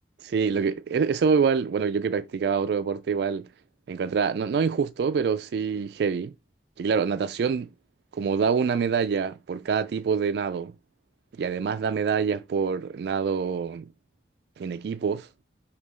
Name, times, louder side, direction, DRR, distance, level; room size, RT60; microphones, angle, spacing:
voice 1, 0.2-3.5 3.9-6.3 6.8-7.7 8.1-10.7 11.4-13.9 14.6-15.3, right 6 dB, 65° right, 0.3 m, -26 dB
6.5 x 2.8 x 5.4 m
head